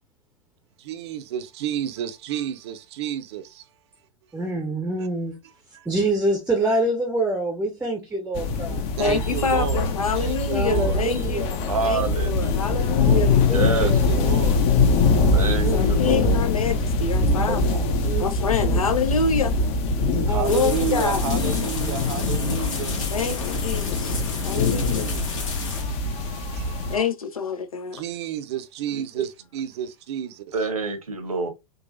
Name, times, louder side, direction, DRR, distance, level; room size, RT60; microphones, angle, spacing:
voice 1, 0.8-3.7 5.7-5.9 9.0-11.0 13.7-14.6 20.2-23.0 24.8-27.0 27.9-30.5, right 10 dB, 50° right, 0.6 m, -32 dB
voice 2, 4.3-5.4 5.9-8.8 10.5-11.6 13.0-14.1 15.6-16.4 18.0-18.3 18.6-18.8 20.3-20.8, right 2 dB, 5° right, 0.6 m, -26 dB
sound 1, 8.3-27.0, left 3 dB, 35° left, 0.6 m, -23 dB
voice 3, 9.0-11.5 11.8-13.3 15.4-17.8 18.2-19.6 20.5-21.2 23.1-25.1 25.9-26.0 26.9-28.0, left 5 dB, 75° left, 0.6 m, -27 dB
voice 4, 11.7-12.8 13.5-14.4 15.3-16.4 17.5-17.9 28.9-29.0 30.5-31.5, right 3 dB, 75° right, 0.9 m, -28 dB
sound 2, 20.4-25.8, left 4 dB, 60° left, 1.4 m, -31 dB
3.8 x 2.4 x 2.5 m
figure-of-eight pair, 95°, 18 cm